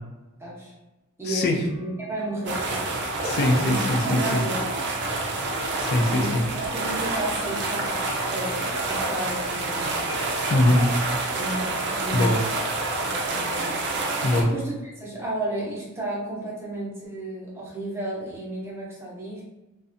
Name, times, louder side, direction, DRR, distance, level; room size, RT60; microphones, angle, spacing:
voice 1, 0.4-0.7 1.2-2.8 3.6-4.6 4.9-5.0 6.1-10.3 11.4-12.3 13.0-19.4, right 2 dB, 10° right, -6 dB, 0.7 m, -33 dB
voice 2, 1.2-1.6 3.2-4.4 5.8-6.4 10.5-10.9 12.1-12.4 14.2-14.5, left 1 dB, 50° left, 2 dB, 0.4 m, -22 dB
sound 1, 1.7-8.4, left 1 dB, 75° left, 0.9 m, -45 dB
sound 2, 2.5-14.4, right 2 dB, 55° right, 0.4 m, -28 dB
2.5 x 2.1 x 2.5 m, 1.0 s
head